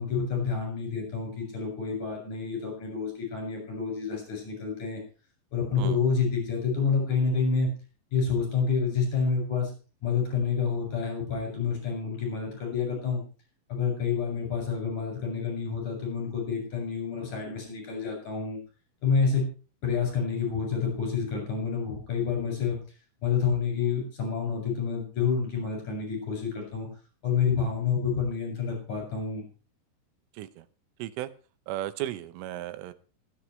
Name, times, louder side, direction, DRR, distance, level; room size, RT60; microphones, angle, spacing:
voice 1, 0.0-5.0 5.5-7.7 8.1-9.7 10.0-13.2 13.7-18.6 19.0-19.4 19.8-22.8 23.2-26.9 27.2-29.4, left 5 dB, 35° left, 1 dB, 8.3 m, -28 dB
voice 2, 30.3-30.7 31.0-31.3 31.7-32.9, right 13 dB, 80° right, 14 dB, 3.4 m, -35 dB
26.0 x 9.7 x 3.3 m, 0.36 s
omnidirectional pair, 5.8 m